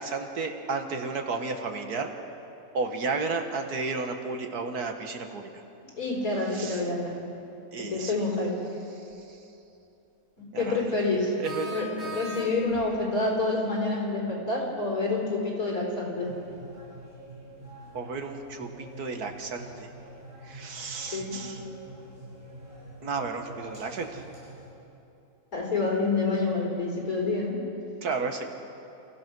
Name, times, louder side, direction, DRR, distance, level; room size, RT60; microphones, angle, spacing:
voice 1, 0.0-2.1 2.7-5.5 6.5-6.9 7.7-8.2 9.0-9.4 10.5-10.8 11.4-11.9 17.9-19.9 20.4-21.6 23.0-24.2 28.0-28.5, right 4 dB, 80° right, 5 dB, 1.9 m, -33 dB
voice 2, 6.0-7.1 7.9-8.5 10.5-11.3 11.6-16.3 21.1-21.4 25.5-27.5, left 3 dB, 65° left, -2 dB, 4.7 m, -27 dB
sound 1, 9.1-9.2 11.4-12.9, right 1 dB, 45° right, 3.4 m, -38 dB
sound 2, 16.2-24.7, right 1 dB, 20° right, 6.7 m, -46 dB
28.0 x 15.5 x 6.1 m, 2.8 s
omnidirectional pair, 1.6 m